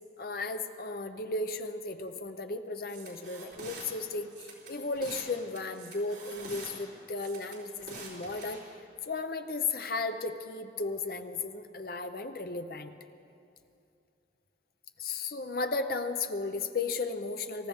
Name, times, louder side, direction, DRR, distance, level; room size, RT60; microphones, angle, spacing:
voice 1, 0.2-8.6 9.0-12.9 15.0-17.7, left 3 dB, 55° left, 8 dB, 0.8 m, -35 dB
sound 1, 2.9-3.9 4.3-5.3 5.6-6.7 7.2-8.6, right 4 dB, 75° right, 4.0 m, -46 dB
25.5 x 14.0 x 3.6 m, 2.6 s
head